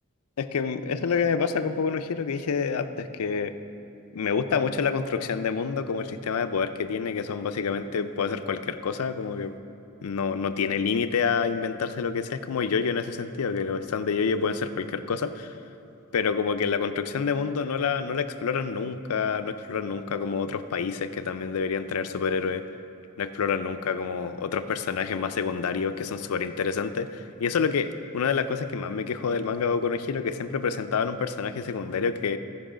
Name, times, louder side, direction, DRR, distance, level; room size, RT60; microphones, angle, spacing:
voice 1, 0.4-3.6 4.1-9.5 10.0-15.5 16.1-22.6 23.2-32.4, left 5 dB, 80° left, 10 dB, 0.5 m, -28 dB
16.0 x 5.4 x 5.0 m, 2.8 s
head